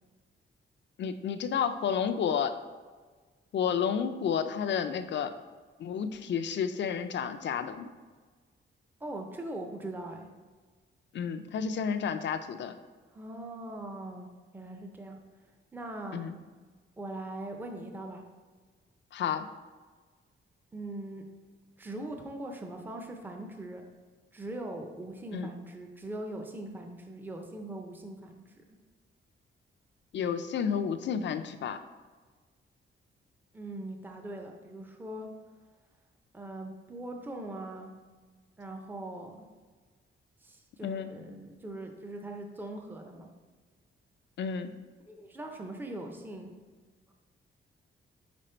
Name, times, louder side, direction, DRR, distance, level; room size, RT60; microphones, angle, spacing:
voice 1, 1.0-2.5 3.5-5.3 5.8-7.9 11.1-12.8 16.1-16.4 19.1-19.5 25.3-25.5 30.1-31.8 40.8-41.1 44.4-44.7, left 7 dB, 60° left, 9 dB, 0.4 m, -31 dB
voice 2, 9.0-10.3 13.1-15.2 15.7-16.3 17.0-18.2 20.7-21.2 21.8-23.9 24.3-28.4 33.5-35.3 36.3-37.9 38.6-39.5 40.4-43.3 45.1-46.5, right 1 dB, 10° right, 3 dB, 0.5 m, -41 dB
5.1 x 4.9 x 4.3 m, 1.4 s
wide cardioid pair, 155°, 21 cm